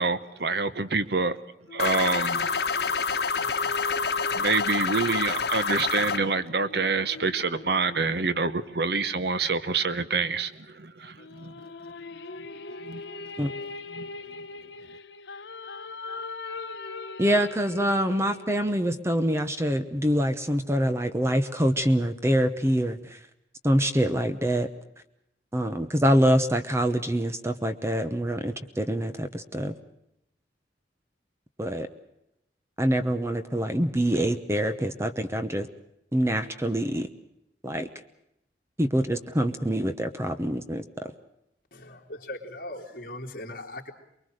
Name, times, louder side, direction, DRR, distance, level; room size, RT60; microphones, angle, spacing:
voice 1, 0.0-1.4 1.7-2.5 4.3-11.5 12.8-13.0 13.9-14.1, right 4 dB, 65° right, 1.1 m, -27 dB
sound 1, 1.7-9.3 11.2-18.6, left 3 dB, 85° left, 1.0 m, -41 dB
sound 2, 1.8-6.2, left 5 dB, 70° left, 1.7 m, -27 dB
voice 2, 17.2-23.2 23.6-24.7 25.5-29.7 31.6-31.9 32.8-35.7 36.1-37.1 37.6-37.9 38.8-40.8, equal, 15° right, 1.0 m, -25 dB
voice 3, 41.7-43.9, left 1 dB, 55° left, 3.3 m, -39 dB
24.5 x 22.0 x 6.5 m
head